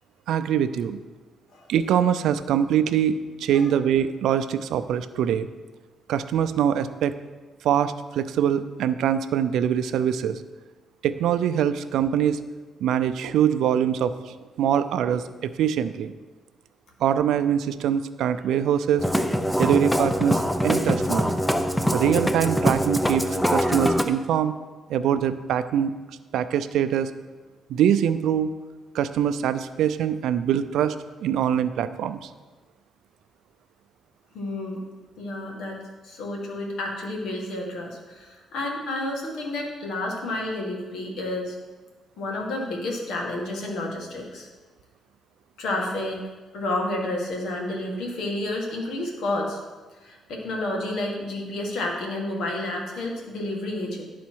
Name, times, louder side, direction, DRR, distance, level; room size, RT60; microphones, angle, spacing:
voice 1, 0.3-1.0 1.7-5.5 6.1-7.1 7.6-10.4 11.0-12.4 12.8-16.1 17.0-19.1 19.6-21.3 21.9-24.5 24.9-25.9 26.3-27.1 27.7-28.5 28.9-31.0 31.2-32.3, right 9 dB, 80° right, 12 dB, 0.4 m, -23 dB
Musical instrument, 19.0-24.0, equal, 5° left, 0.6 m, -23 dB
voice 2, 34.3-34.8 35.2-41.6 42.2-44.5 45.6-46.2 46.5-49.6 50.0-54.0, left 2 dB, 75° left, 0 dB, 1.7 m, -30 dB
11.5 x 4.2 x 4.6 m, 1.3 s
cardioid pair, 90°, 0 cm